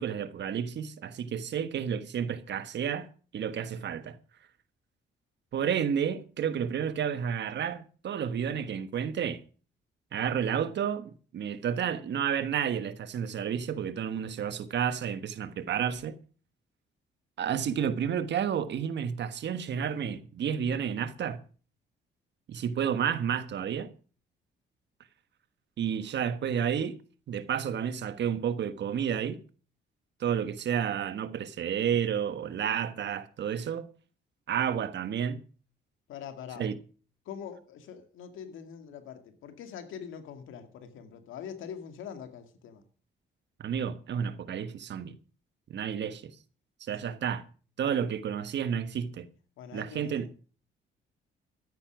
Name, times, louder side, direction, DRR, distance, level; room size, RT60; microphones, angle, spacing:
voice 1, 0.0-3.1 3.3-4.2 5.5-9.4 10.1-16.2 17.4-21.4 22.5-23.9 25.8-27.0 27.3-29.4 30.2-33.9 34.5-35.4 36.6-36.8 43.6-45.2 45.7-46.3 46.8-47.4 47.8-49.3 49.7-50.3, right 8 dB, 60° right, 1.3 m, -31 dB
voice 2, 36.1-36.6 37.2-42.8 47.0-47.2 49.6-50.2, left 8 dB, 85° left, 2.2 m, -43 dB
13.5 x 9.8 x 6.1 m
cardioid pair, 90°, 20 cm